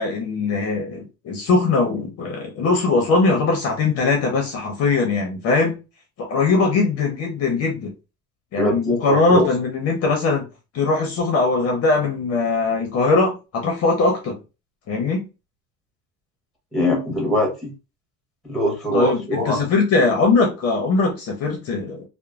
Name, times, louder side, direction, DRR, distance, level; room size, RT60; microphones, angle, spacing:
voice 1, 0.0-5.8 6.2-7.9 8.5-10.4 10.7-14.4 14.9-15.3 18.9-22.0, left 3 dB, 45° left, 0.7 m, -20 dB
voice 2, 8.6-9.5 16.7-17.7 18.4-19.7, equal, ahead, 1.1 m, -22 dB
3.0 x 2.1 x 2.3 m
cardioid pair, 155°, 34 cm